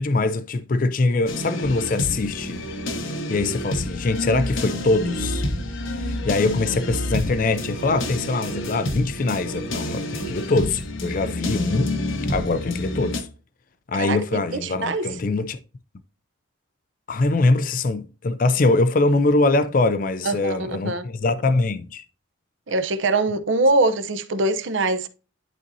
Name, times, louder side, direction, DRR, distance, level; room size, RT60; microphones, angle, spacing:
voice 1, 0.0-2.6 3.3-5.5 6.0-11.9 12.3-13.3 13.9-15.6 17.1-22.0, left 3 dB, 45° left, 0.4 m, -23 dB
sound 1, 1.3-13.2, left 1 dB, 85° left, 1.2 m, -29 dB
voice 2, 14.5-15.1 20.2-21.1 22.7-25.1, right 2 dB, 70° right, 0.7 m, -23 dB
11.0 x 4.2 x 2.7 m
head